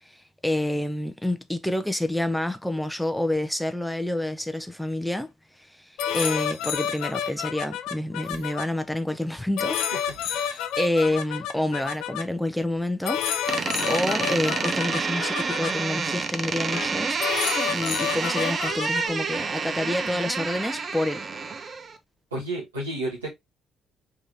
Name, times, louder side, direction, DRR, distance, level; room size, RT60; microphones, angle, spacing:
voice 1, 0.1-5.3 5.6-9.8 10.2-13.5 13.8-17.2 17.7-21.3, left 1 dB, 5° left, 0.5 m, -28 dB
sound 1, 6.0-8.6 9.6-12.2 13.0-15.7 16.7-16.9 17.2-19.1, left 9 dB, 65° left, 0.3 m, -29 dB
sound 2, 6.6-6.8 7.2-7.3 8.2-8.5 8.8-8.9 10.0-10.3 11.0-11.1 11.4-11.5 11.8-12.1 12.7-12.9, right 5 dB, 70° right, 1.5 m, -50 dB
voice 2, 10.3-10.7 22.3-23.3, right 1 dB, 85° right, 1.5 m, -32 dB
Door, 13.5-22.0, right 5 dB, 40° right, 0.6 m, -28 dB
3.6 x 3.1 x 2.6 m
figure-of-eight pair, 45°, 0 cm